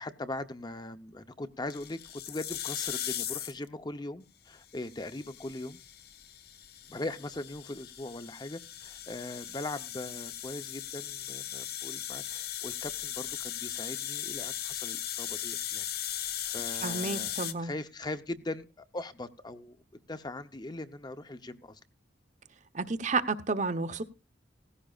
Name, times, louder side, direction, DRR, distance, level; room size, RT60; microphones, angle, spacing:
voice 1, 0.0-5.8 6.9-21.8, left 2 dB, 25° left, 0.8 m, -40 dB
sound 1, 1.7-3.7 4.7-17.5, left 11 dB, 65° left, 1.1 m, -38 dB
voice 2, 16.8-17.7 22.7-24.0, right 3 dB, 45° right, 0.9 m, -31 dB
17.5 x 15.5 x 2.4 m
head